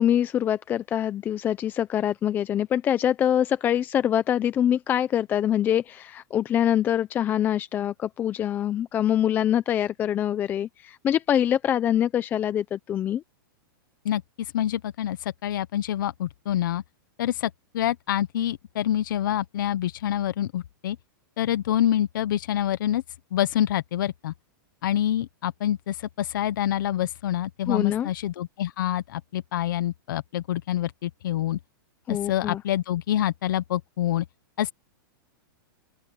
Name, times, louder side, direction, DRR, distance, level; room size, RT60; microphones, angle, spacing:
voice 1, 0.0-13.2 27.7-28.1 32.1-32.6, left 10 dB, 15° left, 0.5 m, -24 dB
voice 2, 14.0-16.8 17.2-21.0 21.4-23.0 23.3-24.3 24.8-31.6 32.1-34.2 34.6-34.7, left 11 dB, 65° left, 1.0 m, -26 dB
open air
supercardioid pair, 160°, 11 cm